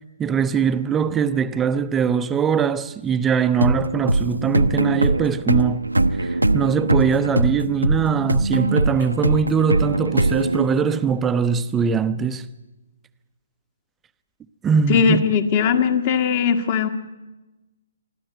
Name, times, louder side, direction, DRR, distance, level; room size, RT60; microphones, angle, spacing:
voice 1, 0.0-5.9 6.1-12.5 14.6-15.2, right 6 dB, 10° right, 0.6 m, -22 dB
sound 1, 3.6-11.2, right 2 dB, 85° right, 0.8 m, -21 dB
voice 2, 14.9-16.9, left 6 dB, 35° left, 1.5 m, -19 dB
23.5 x 13.5 x 9.1 m
figure-of-eight pair, 130°, 0 cm